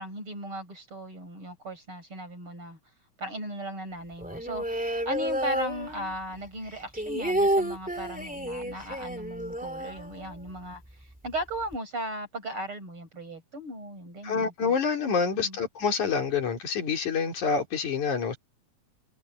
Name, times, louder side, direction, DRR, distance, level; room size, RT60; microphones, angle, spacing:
voice 1, 0.0-2.8 3.2-14.5 15.4-15.6, right 1 dB, 45° right, 7.8 m, -37 dB
sound 1, 4.2-6.3 6.7-10.6 10.9-11.0 11.3-11.8, right 1 dB, 5° right, 1.9 m, -30 dB
voice 2, 14.2-18.4, left 5 dB, 85° left, 4.7 m, -27 dB
omnidirectional pair, 3.3 m